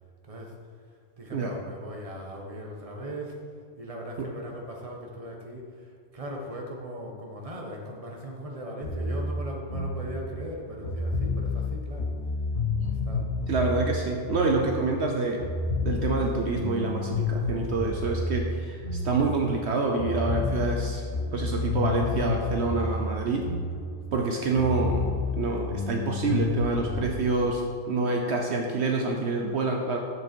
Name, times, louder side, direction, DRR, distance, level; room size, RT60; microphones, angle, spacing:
voice 1, 1.2-3.4 3.8-12.1 12.9-13.3 24.3-24.5, equal, 30° right, 0 dB, 1.4 m, -39 dB
sound 1, 8.8-15.1 15.4-19.7 20.0-24.3 24.6-27.1, left 3 dB, 65° left, 1.5 m, -30 dB
voice 2, 12.7-13.1 13.5-15.4 15.8-21.0 21.3-23.5 24.1-27.6 27.9-30.0, right 3 dB, 65° right, 1 dB, 1.1 m, -27 dB
9.9 x 7.6 x 4.6 m, 2.1 s
omnidirectional pair, 1.2 m